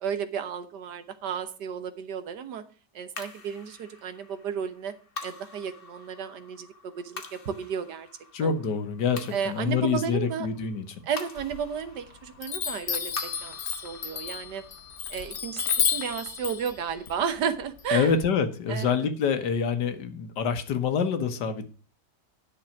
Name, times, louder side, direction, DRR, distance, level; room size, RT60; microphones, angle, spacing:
voice 1, 0.0-2.6 3.0-4.9 5.2-8.1 8.4-8.5 9.3-10.5 11.1-14.6 15.1-18.1 18.7-19.0, right 7 dB, 75° right, 11 dB, 1.7 m, -33 dB
sound 1, 3.2-17.7, left 3 dB, 35° left, 1.4 m, -46 dB
voice 2, 8.3-11.0 17.9-21.7, left 6 dB, 80° left, 9 dB, 1.8 m, -26 dB
Chime, 11.4-12.0 12.4-18.3, left 8 dB, 50° left, 0.9 m, -31 dB
10.0 x 6.4 x 5.8 m, 0.38 s
omnidirectional pair, 1.8 m